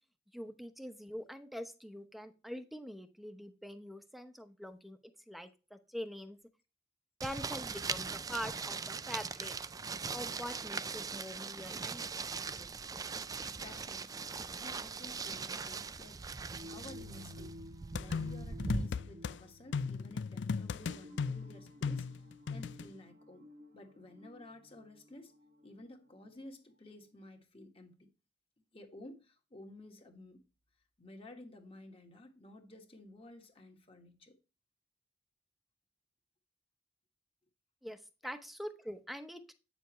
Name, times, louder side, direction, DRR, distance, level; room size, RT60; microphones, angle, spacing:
voice 1, 0.3-5.0 5.3-6.4 7.2-9.5 10.1-12.8 37.8-39.5, equal, ahead, 0.9 m, -44 dB
sound 1, 7.2-18.9, right 5 dB, 20° right, 0.4 m, -40 dB
voice 2, 13.6-16.3 16.7-17.5 18.0-22.1 22.5-23.5 23.7-25.3 25.6-28.1 28.7-30.4 31.0-34.4, left 1 dB, 30° left, 1.7 m, -53 dB
sound 2, 16.4-26.3, left 1 dB, 55° right, 1.0 m, -54 dB
sound 3, 17.9-19.4 19.7-22.9, left 5 dB, 85° left, 0.4 m, -36 dB
9.2 x 7.0 x 3.1 m
head